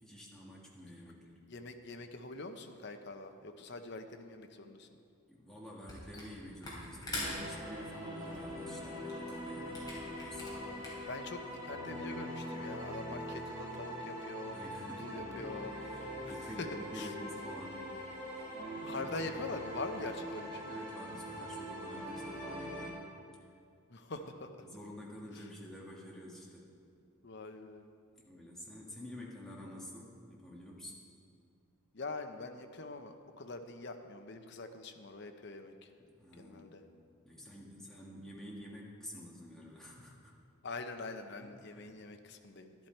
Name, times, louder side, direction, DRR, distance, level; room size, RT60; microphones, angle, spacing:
voice 1, 0.0-1.4 5.3-10.5 14.5-15.2 15.7-17.9 18.3-18.6 18.9-19.2 20.0-20.1 20.5-23.0 24.1-24.3 24.6-26.7 28.2-31.0 36.0-36.7 37.2-40.3 41.4-42.0, left 1 dB, ahead, -5 dB, 1.5 m, -49 dB
voice 2, 1.5-4.9 10.5-10.8 11.1-14.5 15.0-15.7 16.2-16.7 16.9-17.1 18.8-20.5 23.9-24.5 25.4-25.5 27.2-27.9 31.9-35.9 36.4-36.8 40.6-42.7, left 3 dB, 50° left, 6 dB, 0.7 m, -44 dB
Camera, 5.9-6.3 6.6-11.1, left 2 dB, 20° left, 3.0 m, -44 dB
sound 1, 7.2-22.9, equal, 20° right, 2.3 m, -43 dB
12.0 x 11.0 x 4.4 m, 2.3 s
head